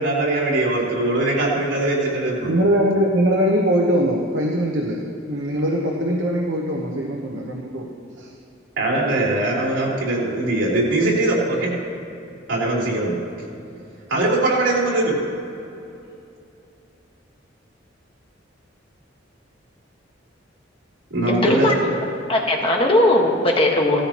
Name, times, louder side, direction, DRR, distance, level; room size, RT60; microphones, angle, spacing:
voice 1, 0.0-2.6 8.8-11.7 12.5-13.2 14.1-15.2 21.1-21.7, right 2 dB, 85° right, -4 dB, 3.4 m, -21 dB
voice 2, 2.5-5.0 5.3-7.9 8.2-8.3, equal, 65° right, -1 dB, 1.0 m, -21 dB
voice 3, 21.3-21.7 22.3-24.0, left 1 dB, 30° left, -1 dB, 1.5 m, -18 dB
17.0 x 13.5 x 3.0 m, 2.7 s
head